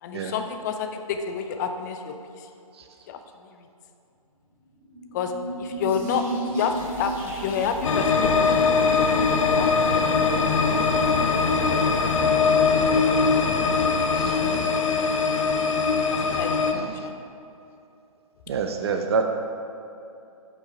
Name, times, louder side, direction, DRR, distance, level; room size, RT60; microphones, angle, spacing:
voice 1, 0.0-2.5 3.1-3.7 5.1-9.0 9.4-10.8 12.0-12.6 14.5-15.1 16.1-17.1, left 6 dB, 30° left, 6 dB, 0.5 m, -31 dB
sound 1, 4.7-8.0, right 1 dB, 10° right, 1.8 m, -33 dB
sound 2, 6.7-12.2, right 1 dB, 65° right, 1.7 m, -40 dB
sound 3, 7.8-16.7, left 4 dB, 60° left, 0.8 m, -21 dB
voice 2, 14.1-14.7 16.8-17.1 18.5-19.2, right 5 dB, 45° right, 5 dB, 0.6 m, -28 dB
8.4 x 5.5 x 4.7 m, 2.7 s
figure-of-eight pair, 130°, 19 cm